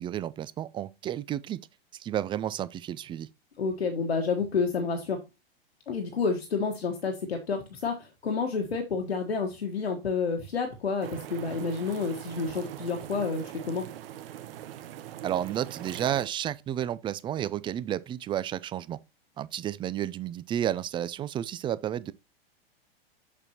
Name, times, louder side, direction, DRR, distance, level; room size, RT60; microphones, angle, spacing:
voice 1, 0.0-1.6 2.0-3.3 15.2-19.0 19.4-22.1, right 11 dB, 15° right, 0.3 m, -31 dB
voice 2, 3.6-5.2 5.9-13.8, left 5 dB, 90° left, 1.4 m, -29 dB
sound 1, 11.0-16.3, right 12 dB, 65° right, 0.9 m, -42 dB
6.8 x 6.4 x 2.9 m
hypercardioid pair, 105°, 30 cm